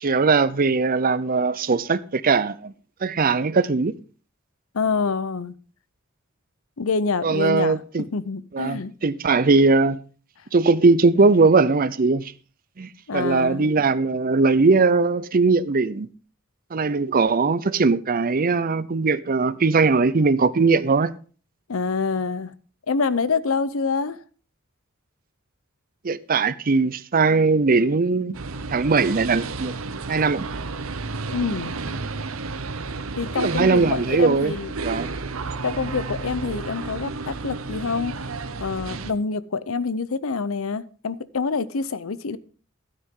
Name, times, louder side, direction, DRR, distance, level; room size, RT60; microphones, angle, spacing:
voice 1, 0.0-2.7 3.0-3.9 7.2-8.1 8.5-10.0 10.5-12.3 12.8-16.1 16.7-21.1 26.0-28.3 28.7-29.7 30.1-30.5 33.4-34.6 34.8-35.1, right 4 dB, 45° right, 0.6 m, -20 dB
voice 2, 4.7-5.5 6.8-8.9 13.1-13.7 21.7-22.5 22.9-24.2 31.3-31.7 33.2-34.7 35.6-38.2 38.6-42.4, left 4 dB, 80° left, 0.7 m, -26 dB
sound 1, 28.3-39.1, right 3 dB, 80° right, 0.9 m, -32 dB
12.5 x 9.6 x 3.8 m
head